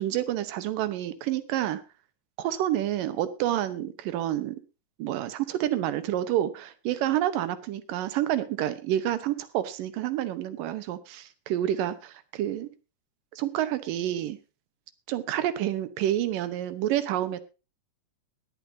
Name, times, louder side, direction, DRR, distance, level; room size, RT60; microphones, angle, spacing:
voice 1, 0.0-1.8 2.4-4.6 5.0-12.7 13.3-14.4 15.1-17.4, right 12 dB, 90° right, 13 dB, 2.7 m, -28 dB
20.5 x 9.1 x 2.7 m, 0.30 s
omnidirectional pair, 3.8 m